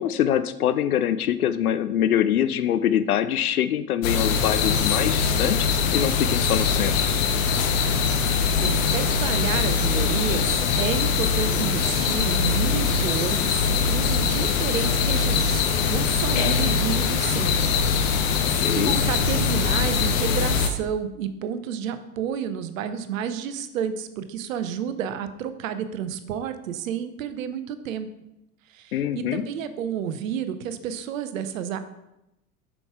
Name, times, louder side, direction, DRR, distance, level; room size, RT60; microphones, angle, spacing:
voice 1, 0.0-7.1 18.4-19.0 28.9-29.5, left 10 dB, 75° left, 13 dB, 0.6 m, -24 dB
sound 1, 4.0-20.7, left 6 dB, 55° left, 0.9 m, -22 dB
voice 2, 8.6-15.6 15.9-17.6 18.7-28.1 28.7-31.8, right 8 dB, 60° right, 11 dB, 0.8 m, -30 dB
7.8 x 6.0 x 3.6 m, 0.89 s
figure-of-eight pair, 75°, 45 cm